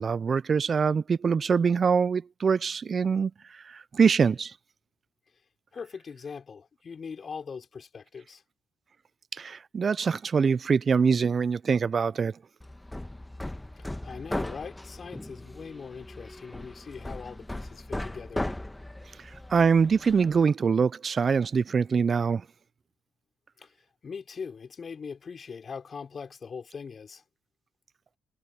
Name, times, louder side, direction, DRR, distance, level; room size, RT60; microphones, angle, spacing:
voice 1, 0.0-4.5 9.3-12.4 19.2-22.4, right 5 dB, 45° right, 0.4 m, -24 dB
voice 2, 5.7-8.4 13.7-18.5 23.6-23.7 24.0-27.2, left 5 dB, 45° left, 4.9 m, -41 dB
Hammer, 12.6-20.4, left 1 dB, 10° left, 1.4 m, -38 dB
cardioid pair, 75°, 0 cm